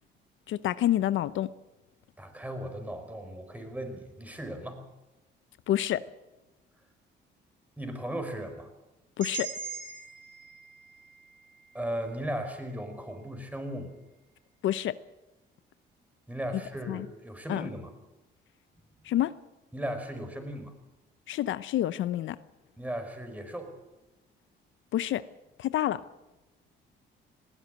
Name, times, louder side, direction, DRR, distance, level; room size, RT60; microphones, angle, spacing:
voice 1, 0.5-1.5 5.7-6.0 9.2-9.5 14.6-15.0 16.9-17.1 17.5-17.7 19.0-19.3 21.3-22.4 24.9-25.2 25.6-26.0, left 12 dB, 75° left, 15 dB, 0.7 m, -28 dB
voice 2, 2.2-4.8 7.8-8.7 11.7-13.9 16.3-17.9 19.7-20.7 22.8-23.7, right 1 dB, 5° right, 6 dB, 5.0 m, -37 dB
sound 1, 9.2-13.2, right 4 dB, 75° right, 7.4 m, -42 dB
20.5 x 17.0 x 8.0 m, 1.0 s
cardioid pair, 90°, 20 cm